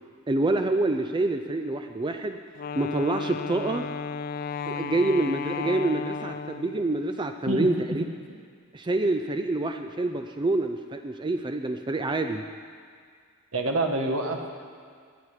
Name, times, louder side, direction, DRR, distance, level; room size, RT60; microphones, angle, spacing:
voice 1, 0.3-2.4 2.8-3.9 4.7-8.0 8.7-12.4, right 2 dB, 20° right, 6 dB, 0.4 m, -27 dB
Wind instrument woodwind instrument, 2.5-6.9, left 6 dB, 45° left, 0.4 m, -34 dB
voice 2, 7.5-7.8 13.5-14.5, right 2 dB, 75° right, 3 dB, 1.4 m, -27 dB
21.0 x 8.5 x 4.9 m, 2.1 s
head